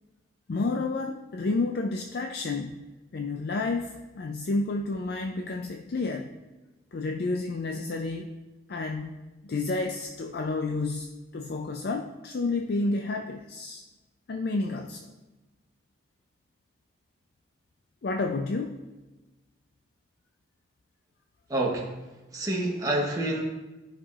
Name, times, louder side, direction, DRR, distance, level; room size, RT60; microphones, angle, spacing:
voice 1, 0.5-2.8 3.1-6.3 6.9-8.3 8.7-13.8 14.3-15.1 18.0-18.8, left 3 dB, 55° left, 4 dB, 0.4 m, -30 dB
voice 2, 21.5-21.9 22.3-23.4, right 1 dB, 20° right, -2 dB, 1.0 m, -27 dB
12.5 x 5.6 x 2.4 m, 1.1 s
head